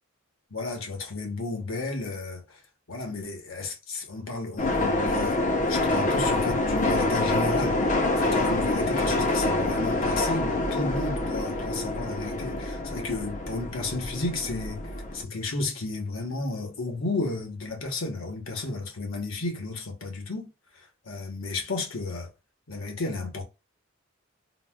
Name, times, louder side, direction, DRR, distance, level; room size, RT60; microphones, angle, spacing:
voice 1, 0.5-2.4 2.9-5.4 5.7-7.8 8.2-14.8 15.1-20.5 21.1-22.3 22.7-23.4, left 2 dB, 75° left, 1.0 m, -32 dB
sound 1, 4.6-15.2, left 2 dB, 35° left, 0.5 m, -26 dB
4.0 x 2.1 x 2.2 m
head